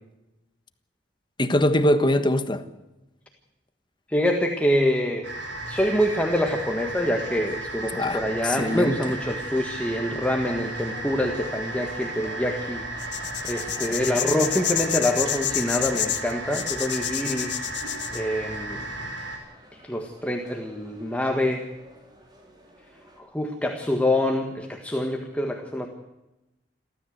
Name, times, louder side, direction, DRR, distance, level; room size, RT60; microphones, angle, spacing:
voice 1, 1.4-2.6 8.0-8.9, left 1 dB, 25° left, 1.4 m, -22 dB
voice 2, 4.1-5.3 5.7-12.8 13.5-17.5 18.1-18.8 19.8-21.6 23.3-25.9, left 1 dB, 10° left, 1.6 m, -25 dB
sound 1, 5.2-19.4, right 1 dB, 85° right, 5.5 m, -35 dB
sound 2, 10.5-23.2, right 1 dB, 25° right, 4.1 m, -48 dB
sound 3, 13.0-18.2, left 12 dB, 75° left, 1.6 m, -28 dB
29.0 x 13.0 x 8.0 m
head